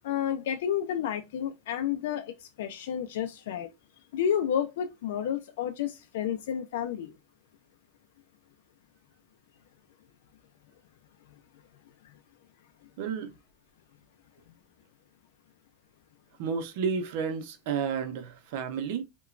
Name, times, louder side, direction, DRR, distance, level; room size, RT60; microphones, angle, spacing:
voice 1, 0.0-3.7 4.1-7.1 12.0-12.1, left 9 dB, 80° left, 0.3 m, -31 dB
voice 2, 13.0-13.3 16.4-19.0, right 6 dB, 65° right, 0.6 m, -31 dB
2.9 x 2.2 x 2.4 m
supercardioid pair, 145°, 0 cm